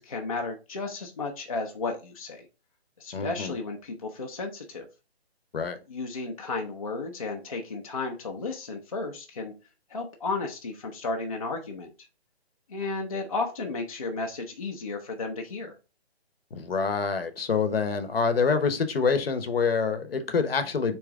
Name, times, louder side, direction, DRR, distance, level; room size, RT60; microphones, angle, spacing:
voice 1, 0.0-2.5 3.0-4.9 5.9-9.5 9.9-11.9 12.7-15.8, left 3 dB, 35° left, 2 dB, 0.4 m, -33 dB
voice 2, 3.1-3.5 5.5-5.8 16.5-21.0, left 5 dB, 60° left, 9 dB, 0.8 m, -26 dB
3.6 x 3.0 x 4.5 m, 0.31 s
hypercardioid pair, 160°, 33 cm